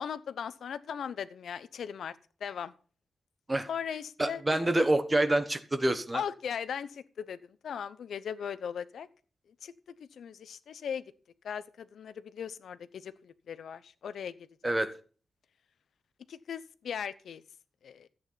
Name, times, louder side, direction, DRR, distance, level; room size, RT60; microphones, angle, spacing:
voice 1, 0.0-2.1 2.4-2.7 3.7-4.9 6.1-7.4 7.6-9.1 9.6-9.7 10.2-11.0 11.4-14.3 14.6-14.8 16.3-17.4 17.8-18.1, left 7 dB, 85° left, 14 dB, 0.8 m, -38 dB
voice 2, 4.2-6.2 14.6-14.9, right 1 dB, 15° right, 10 dB, 1.1 m, -27 dB
14.0 x 8.8 x 4.0 m, 0.39 s
wide cardioid pair, 180°, 0 cm